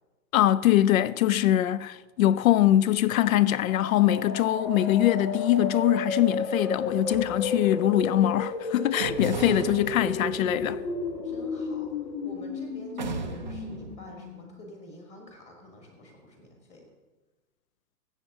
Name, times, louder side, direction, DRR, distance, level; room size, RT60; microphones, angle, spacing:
voice 1, 0.3-10.8, left 13 dB, 60° left, 0.5 m, -23 dB
sound 1, 3.3-14.9, left 3 dB, 80° left, 1.9 m, -33 dB
sound 2, 6.8-8.3 9.0-12.4 13.0-14.0, right 3 dB, 35° right, 0.4 m, -38 dB
voice 2, 11.2-16.9, left 1 dB, 15° left, 1.5 m, -48 dB
14.5 x 8.0 x 3.7 m
hypercardioid pair, 155°, 48 cm